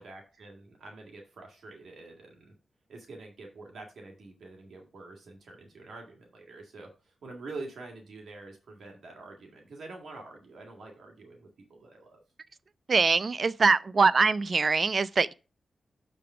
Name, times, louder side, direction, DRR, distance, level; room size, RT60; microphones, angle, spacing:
voice 1, 0.0-2.5 2.9-12.2, right 3 dB, 80° right, 1.9 m, -46 dB
voice 2, 12.9-15.3, right 4 dB, 45° right, 0.3 m, -23 dB
6.8 x 5.2 x 4.8 m
wide cardioid pair, 100°, 0 cm